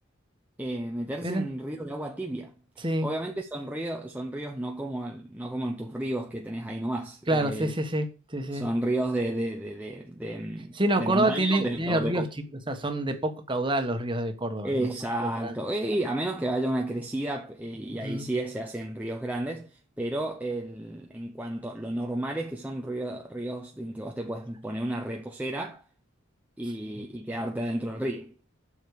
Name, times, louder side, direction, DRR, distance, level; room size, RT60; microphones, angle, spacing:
voice 1, 0.6-2.5 3.0-7.7 8.5-12.3 14.6-25.8 26.6-28.3, right 1 dB, 5° right, 0.7 m, -32 dB
voice 2, 2.8-3.1 7.3-8.7 10.7-12.3 12.7-14.9 15.4-15.5 17.9-18.3, right 1 dB, 20° right, 1.4 m, -27 dB
8.1 x 6.4 x 6.7 m
head